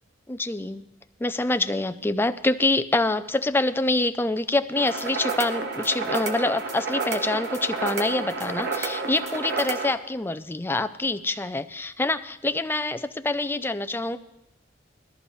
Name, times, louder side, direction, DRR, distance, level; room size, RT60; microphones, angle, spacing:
voice 1, 0.3-0.8 1.2-14.2, left 2 dB, 10° left, 10 dB, 0.4 m, -26 dB
sound 1, 4.8-9.9, right 4 dB, 55° right, 1.3 m, -30 dB
20.5 x 14.0 x 3.2 m, 0.86 s
head